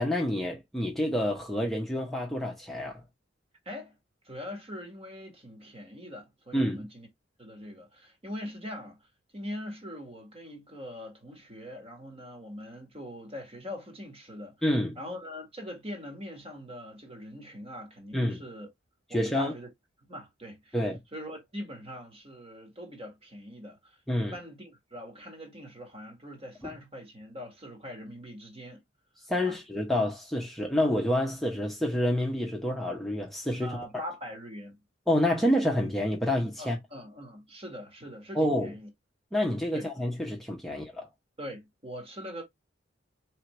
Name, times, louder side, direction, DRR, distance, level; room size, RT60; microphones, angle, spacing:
voice 1, 0.0-3.0 6.5-6.9 14.6-15.0 18.1-18.4 19.1-19.5 20.7-21.0 24.1-24.4 29.3-33.8 35.1-36.8 38.3-38.7 39.3-41.1, left 1 dB, ahead, 0.8 m, -28 dB
voice 2, 4.2-7.1 7.4-9.0 9.3-14.5 14.9-18.7 19.1-19.7 20.1-20.8 21.1-28.8 29.4-29.6 33.6-34.8 36.6-38.9 39.7-39.9 40.7-40.8 41.4-42.4, equal, 30° right, 1.6 m, -42 dB
4.5 x 3.4 x 3.1 m
head